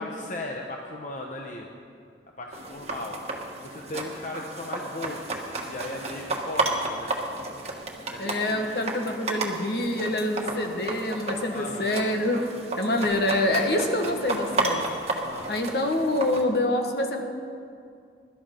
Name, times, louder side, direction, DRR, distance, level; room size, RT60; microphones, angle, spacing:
voice 1, 0.0-1.7 2.4-3.2 3.6-7.2 8.1-8.7 11.5-11.9 15.2-15.7, left 2 dB, 45° left, 0 dB, 1.0 m, -37 dB
sound 1, 2.5-16.4, right 2 dB, 35° right, 1.5 m, -33 dB
voice 2, 8.2-12.4 12.8-14.9 15.5-17.2, left 1 dB, 60° left, 3 dB, 1.5 m, -26 dB
22.0 x 12.5 x 3.8 m, 2.4 s
head